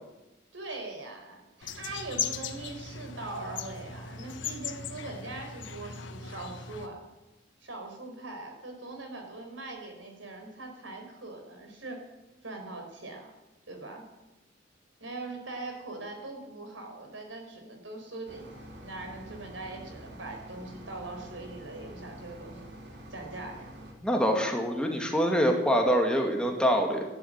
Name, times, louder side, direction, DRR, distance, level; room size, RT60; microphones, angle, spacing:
voice 1, 0.5-7.0 7.6-12.1 12.4-13.3 13.7-14.0 15.0-18.5 18.7-22.7 23.1-23.7, right 2 dB, 90° right, 3 dB, 4.5 m, -41 dB
sound 1, 1.6-6.9, left 7 dB, 80° left, 1.4 m, -38 dB
sound 2, 18.3-23.9, equal, 65° right, 3.4 m, -47 dB
voice 2, 24.0-27.0, equal, 5° left, 1 dB, 2.3 m, -25 dB
14.0 x 11.5 x 9.1 m, 1.0 s
head